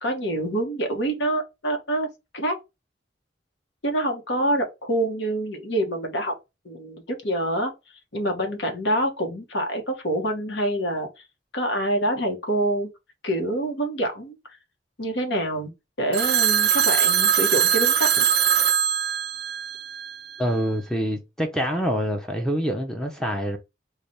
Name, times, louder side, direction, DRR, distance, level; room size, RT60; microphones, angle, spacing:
voice 1, 0.0-2.1 2.3-2.6 3.8-6.3 6.6-7.7 8.1-11.2 11.5-12.9 13.2-14.4 15.0-15.7 16.0-18.3, right 1 dB, 80° left, 1.1 m, -26 dB
Telephone, 16.1-20.4, right 8 dB, 60° right, 0.4 m, -21 dB
voice 2, 20.4-23.6, equal, 5° left, 0.5 m, -26 dB
3.3 x 2.3 x 4.0 m
head